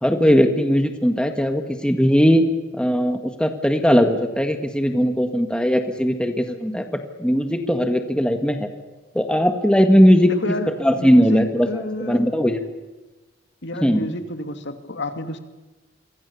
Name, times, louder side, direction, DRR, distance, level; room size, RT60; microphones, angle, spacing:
voice 1, 0.0-2.4 2.7-6.8 7.2-8.7 9.1-10.3 10.8-12.6 13.8-14.1, equal, 5° left, 6 dB, 1.7 m, -18 dB
voice 2, 10.3-10.7 11.0-12.3 13.6-15.4, left 2 dB, 65° left, 8 dB, 2.6 m, -30 dB
29.0 x 24.0 x 7.1 m, 1.2 s
head